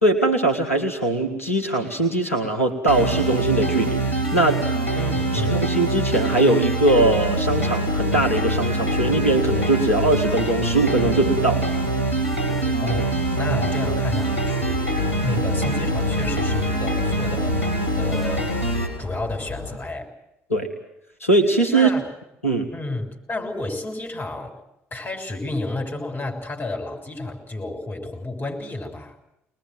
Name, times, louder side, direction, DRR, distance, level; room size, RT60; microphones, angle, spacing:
voice 1, 0.0-4.6 5.3-11.7 20.5-20.7 21.2-21.9 22.4-22.7, right 2 dB, 85° left, 3 dB, 1.7 m, -21 dB
sound 1, 2.9-18.9, right 1 dB, 80° right, 4.0 m, -24 dB
voice 2, 4.9-5.6 12.8-17.7 18.0-18.5 19.0-20.1 21.7-22.1 22.7-24.6 24.9-29.1, left 2 dB, 30° left, 3 dB, 6.6 m, -30 dB
sound 2, 10.7-19.8, left 1 dB, 40° right, 7.1 m, -37 dB
24.0 x 20.5 x 7.9 m, 0.84 s
figure-of-eight pair, 55°, 7 cm